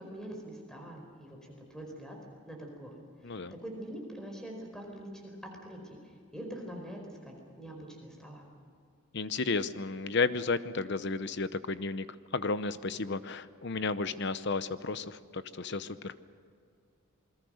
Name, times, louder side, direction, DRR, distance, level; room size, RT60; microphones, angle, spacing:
voice 1, 0.0-2.2 2.5-2.9 3.2-8.4, right 1 dB, 5° left, 1 dB, 4.6 m, -44 dB
voice 2, 9.1-12.1 12.3-16.1, left 3 dB, 55° left, 13 dB, 0.8 m, -33 dB
28.0 x 21.5 x 6.5 m, 2.3 s
head